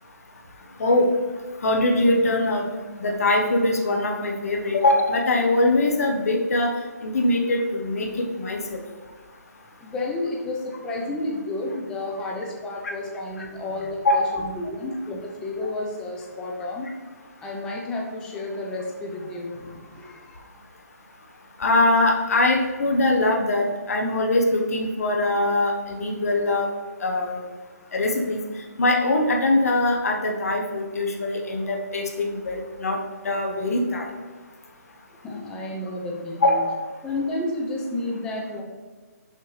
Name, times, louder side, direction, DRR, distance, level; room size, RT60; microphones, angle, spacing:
voice 1, 0.8-1.1 1.6-2.7 3.0-6.7 7.0-8.8 13.4-13.5 14.0-14.4 15.6-15.7 21.6-26.7 27.0-27.5 27.9-28.4 28.8-33.0 33.2-34.1 36.4-36.7, left 2 dB, 60° left, 2 dB, 1.1 m, -22 dB
voice 2, 9.8-16.9 17.4-20.6 35.1-36.6 37.0-38.6, left 2 dB, 10° left, -2 dB, 0.6 m, -31 dB
6.7 x 5.6 x 3.2 m, 1.4 s
hypercardioid pair, 160°, 9 cm